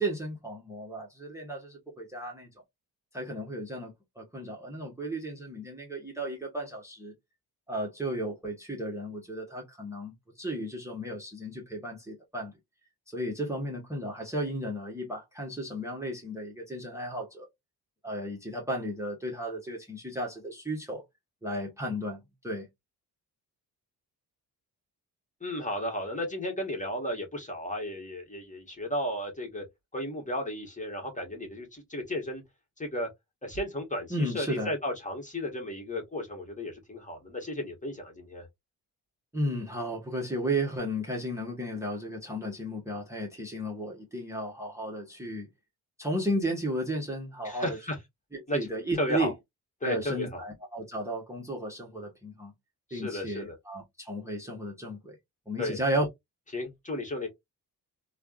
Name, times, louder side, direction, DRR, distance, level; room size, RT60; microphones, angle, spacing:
voice 1, 0.0-2.5 3.1-7.1 7.7-12.5 13.1-17.5 18.0-21.0 21.4-22.7 34.1-34.7 39.3-45.5 46.0-47.8 48.3-49.3 49.8-52.5 52.9-55.1 55.5-56.1, right 1 dB, 5° right, 1.2 m, -34 dB
voice 2, 25.4-29.6 29.9-32.4 32.8-33.1 33.4-38.5 47.4-48.0 48.5-48.7 49.0-49.3 49.8-50.4 52.9-53.5 55.6-55.8 56.5-57.3, left 1 dB, 20° left, 1.5 m, -34 dB
3.3 x 2.3 x 2.5 m
cardioid pair, 65°, 40 cm